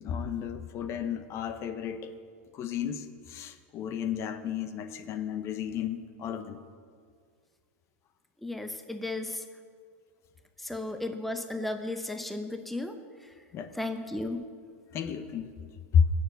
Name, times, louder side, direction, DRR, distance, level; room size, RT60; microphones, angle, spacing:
voice 1, 0.0-2.1 2.5-6.6 13.5-13.7 14.9-15.5 15.9-16.1, left 7 dB, 40° left, 10 dB, 0.9 m, -31 dB
voice 2, 8.4-9.4 10.6-13.0 13.2-13.3 13.7-14.4, left 2 dB, ahead, 7 dB, 0.8 m, -34 dB
17.0 x 7.0 x 7.9 m, 2.1 s
supercardioid pair, 125°, 7 cm